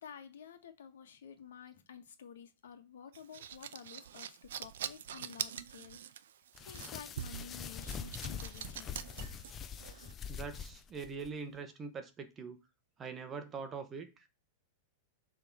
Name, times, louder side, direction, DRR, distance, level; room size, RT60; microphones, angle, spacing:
voice 1, 0.0-6.0 6.6-9.0, left 8 dB, 85° left, 1.5 m, -51 dB
sound 1, 3.1-10.1, right 10 dB, 75° right, 0.6 m, -44 dB
sound 2, 6.5-11.3, left 7 dB, 20° left, 0.6 m, -44 dB
voice 2, 10.3-12.6 13.0-14.2, right 5 dB, 20° right, 1.0 m, -43 dB
7.4 x 3.7 x 6.1 m
supercardioid pair, 155°, 0 cm